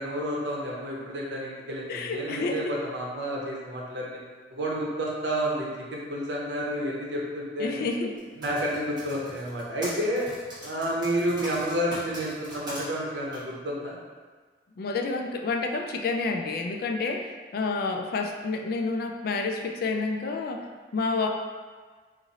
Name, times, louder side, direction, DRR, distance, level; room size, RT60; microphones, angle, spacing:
voice 1, 0.0-4.2 4.5-7.9 8.4-10.3 10.6-14.0, equal, 85° right, -3 dB, 0.8 m, -30 dB
voice 2, 1.9-2.6 7.6-8.2 14.8-21.3, left 3 dB, 60° left, 3 dB, 0.3 m, -29 dB
Typing, 8.2-12.8 13.3-13.4, equal, 25° right, 1.3 m, -40 dB
3.0 x 2.5 x 4.0 m, 1.5 s
head